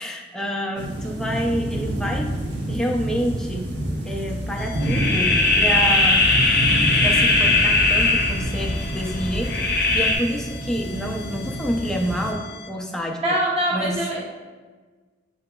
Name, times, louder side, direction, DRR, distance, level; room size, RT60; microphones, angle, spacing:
voice 1, 0.0-2.3 2.7-3.6 4.0-6.2 7.0-13.2 13.7-14.0, equal, 5° left, 0 dB, 0.4 m, -28 dB
sound 1, 0.8-12.3, right 1 dB, 80° right, 0.8 m, -29 dB
sound 2, 4.6-12.7, left 5 dB, 85° left, 0.5 m, -41 dB
sound 3, 4.8-10.1, left 2 dB, 55° left, 0.7 m, -19 dB
voice 2, 13.2-14.2, right 1 dB, 35° right, -4 dB, 0.9 m, -23 dB
6.7 x 2.9 x 2.2 m, 1.4 s
head